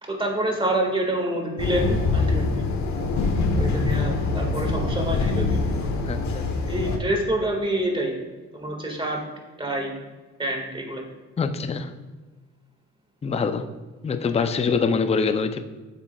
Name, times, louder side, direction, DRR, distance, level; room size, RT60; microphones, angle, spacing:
voice 1, 0.0-2.7 3.6-6.0 6.7-8.2 8.5-9.2 9.6-9.9 10.4-11.0, right 1 dB, 15° right, 1 dB, 1.8 m, -27 dB
sound 1, 1.6-7.0, left 3 dB, 70° left, 1.1 m, -24 dB
voice 2, 6.0-6.4 11.4-11.9 13.2-13.7 14.0-15.6, left 5 dB, 20° left, 9 dB, 0.5 m, -24 dB
9.2 x 7.1 x 2.3 m, 1.3 s
cardioid pair, 90°, 30 cm